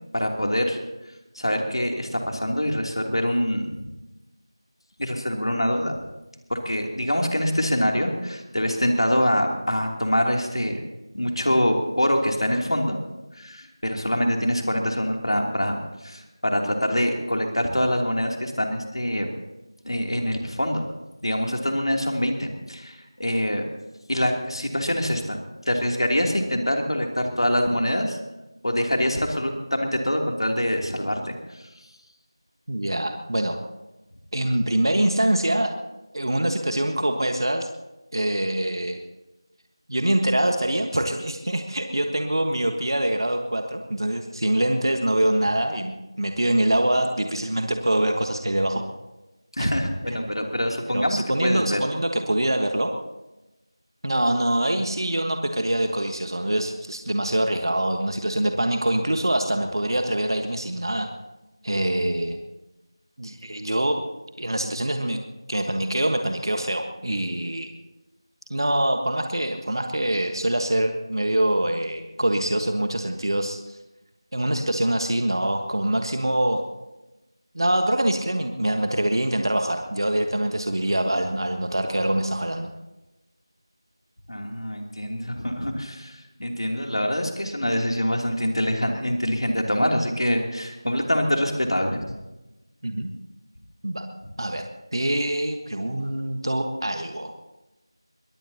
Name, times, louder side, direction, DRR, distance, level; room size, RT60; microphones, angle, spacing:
voice 1, 0.1-0.8 1.3-3.9 5.0-6.0 6.5-10.8 11.1-13.0 13.3-19.3 19.8-20.9 21.2-23.6 24.1-25.4 25.7-28.2 28.6-31.7 49.5-51.8 84.3-92.0, equal, 80° left, 1 dB, 3.0 m, -25 dB
voice 2, 32.7-33.6 34.3-35.7 36.1-37.7 38.1-39.0 39.9-48.8 49.6-49.7 50.9-52.9 54.0-61.1 61.6-62.4 63.2-64.0 64.4-65.2 65.5-67.7 68.5-73.8 74.3-76.6 77.5-82.7 92.8-93.1 93.8-94.1 94.4-94.6 94.9-97.3, right 1 dB, 60° right, 5 dB, 1.4 m, -24 dB
23.0 x 19.0 x 2.9 m, 1.0 s
figure-of-eight pair, 175°, 3 cm